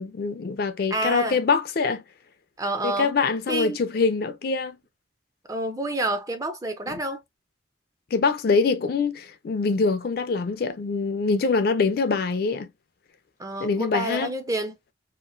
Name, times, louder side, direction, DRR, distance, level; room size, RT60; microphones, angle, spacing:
voice 1, 0.0-2.0 2.8-4.8 6.9-7.0 8.1-12.7 13.6-14.3, left 4 dB, 50° left, 0.4 m, -24 dB
voice 2, 0.9-1.4 2.6-3.1 3.5-3.8 5.5-7.2 13.4-14.8, right 1 dB, 15° right, 0.4 m, -28 dB
2.9 x 2.4 x 2.5 m
head